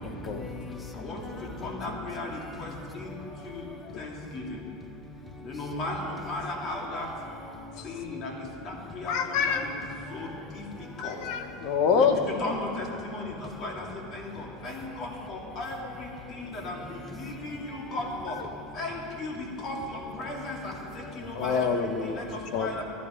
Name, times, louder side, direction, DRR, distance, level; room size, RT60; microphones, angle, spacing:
voice 1, 0.0-2.0 2.7-4.3 4.9-5.6 7.5-8.2 10.1-10.5 10.7-11.0 11.6-11.7 14.5-14.6 14.9-15.0 16.2-16.5 17.0-17.9 20.2-21.4 22.2-22.4, left 2 dB, 10° left, 1.2 m, -43 dB
voice 2, 1.6-3.1 3.4-3.6 4.0-4.4 5.4-7.1 7.8-8.3 8.6-9.1 9.5-9.7 10.1-10.3 11.0-11.2 11.9-13.8 14.1-15.8 16.3-16.8 17.1-18.3 18.8-21.7 22.2-22.8, left 2 dB, 40° left, 2.5 m, -36 dB
voice 3, 9.1-9.7 11.0-12.2 18.3-18.5 21.3-22.2 22.5-22.8, left 6 dB, 60° left, 1.1 m, -27 dB
14.0 x 12.0 x 5.1 m
supercardioid pair, 130°, 0 cm